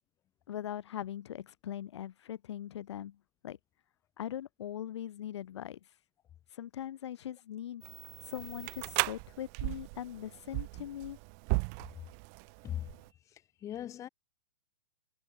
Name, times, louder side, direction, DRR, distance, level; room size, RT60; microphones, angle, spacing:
voice 1, 0.5-3.2 3.4-3.6 4.2-5.9 6.5-7.8 8.2-11.2, left 11 dB, 65° left, 1.2 m, -41 dB
sound 1, 7.8-13.1, right 40 dB or more, 35° right, 2.4 m, -37 dB
voice 2, 13.3-14.1, left 11 dB, 20° left, 3.5 m, -40 dB
hypercardioid pair, 150°, 16 cm